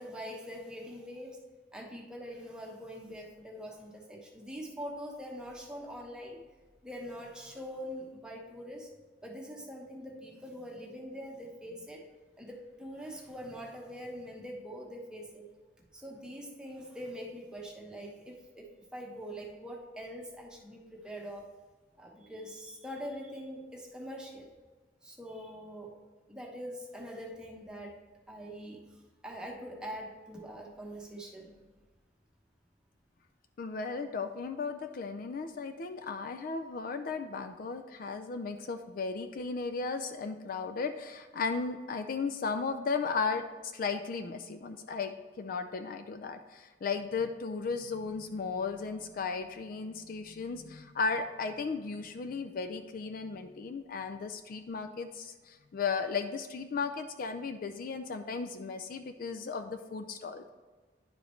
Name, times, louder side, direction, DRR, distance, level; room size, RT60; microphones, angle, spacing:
voice 1, 0.0-1.4 1.7-6.4 6.8-8.9 9.2-12.1 12.4-15.5 15.9-21.5 22.0-24.5 25.0-26.0 26.3-28.0 28.3-28.8 29.2-31.5, equal, 5° right, -1 dB, 1.1 m, -43 dB
voice 2, 33.6-60.5, left 4 dB, 50° left, 8 dB, 0.4 m, -35 dB
10.5 x 4.9 x 3.1 m, 1.4 s
head